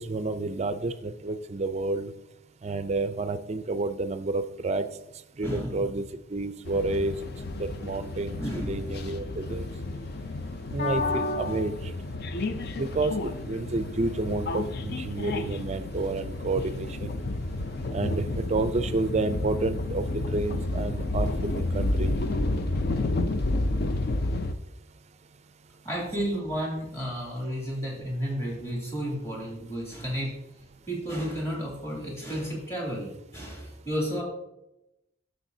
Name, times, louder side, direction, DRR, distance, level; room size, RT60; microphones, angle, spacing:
voice 1, 0.0-2.1 2.6-4.9 5.4-7.1 7.6-9.6 10.7-11.7 12.8-17.1 17.9-22.1, right 3 dB, 30° right, 12 dB, 0.4 m, -30 dB
voice 2, 5.4-6.1 8.4-8.9 11.4-11.7 25.8-30.3 30.9-34.2, equal, 15° left, -3 dB, 2.7 m, -32 dB
sound 1, 6.7-24.5, left 2 dB, 50° left, 0.5 m, -30 dB
10.0 x 6.9 x 2.7 m, 0.88 s
head